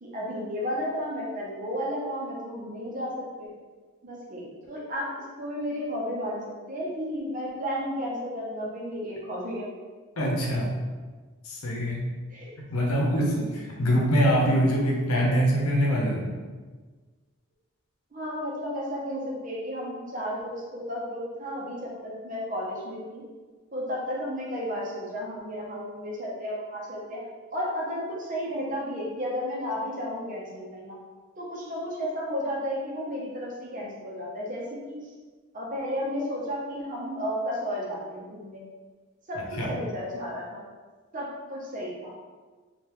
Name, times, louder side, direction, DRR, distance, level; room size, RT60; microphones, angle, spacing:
voice 1, 0.0-3.5 4.0-9.7 12.3-12.6 12.9-13.2 18.1-23.2 23.7-27.2 27.5-30.9 31.4-35.0 35.5-38.6 39.3-40.6 41.1-42.1, equal, 40° right, -3 dB, 0.7 m, -33 dB
voice 2, 10.2-10.7 11.4-12.0 12.7-16.3 39.3-39.7, equal, 90° left, -2 dB, 0.8 m, -24 dB
3.7 x 2.5 x 3.0 m, 1.4 s
head